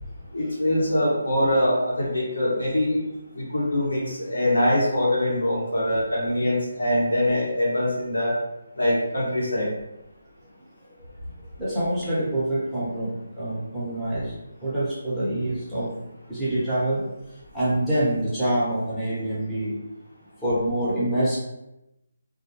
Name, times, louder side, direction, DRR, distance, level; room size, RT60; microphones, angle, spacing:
voice 1, 0.3-3.0 3.3-8.4 8.7-9.7, left 1 dB, 85° left, -5 dB, 1.0 m, -23 dB
voice 2, 11.6-13.1 13.4-14.3 14.6-15.9 16.3-17.0 17.5-19.8 20.4-21.4, right 1 dB, 5° left, -13 dB, 0.9 m, -25 dB
2.2 x 2.2 x 2.9 m, 0.91 s
figure-of-eight pair, 155°, 0 cm